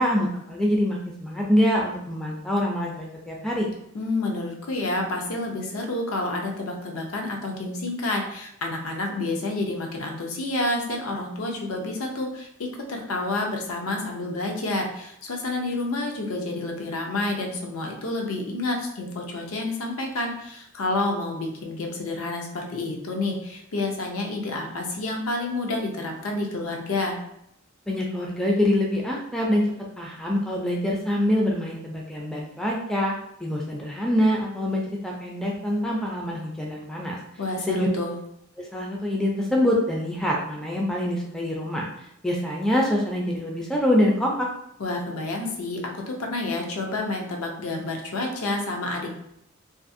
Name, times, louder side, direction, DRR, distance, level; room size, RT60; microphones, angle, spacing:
voice 1, 0.0-3.7 27.9-29.7 30.0-33.1 33.4-37.2 37.7-37.9 38.7-41.9 42.2-44.5, left 1 dB, 5° left, -2 dB, 0.3 m, -25 dB
voice 2, 3.9-27.2 37.4-38.1 44.8-49.1, left 2 dB, 75° left, 1 dB, 0.6 m, -29 dB
2.5 x 2.4 x 2.5 m, 0.78 s
head